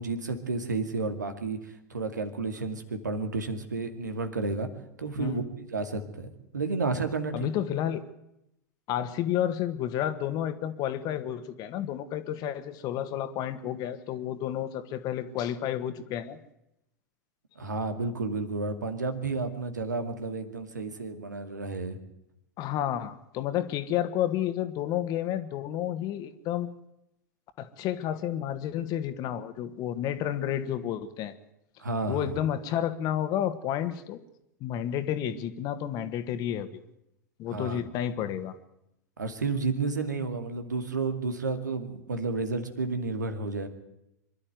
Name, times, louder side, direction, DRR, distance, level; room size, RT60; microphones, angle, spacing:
voice 1, 0.0-4.7 5.0-7.3 17.6-22.0 31.8-32.3 37.5-37.8 39.2-43.7, right 3 dB, 80° right, 7 dB, 2.3 m, -31 dB
voice 2, 7.3-8.0 8.9-16.4 22.6-26.7 27.6-31.3 32.1-34.2 34.6-36.8 37.4-38.6, left 11 dB, 45° left, 11 dB, 1.7 m, -31 dB
24.5 x 12.0 x 9.4 m, 0.85 s
figure-of-eight pair, 90°, 9 cm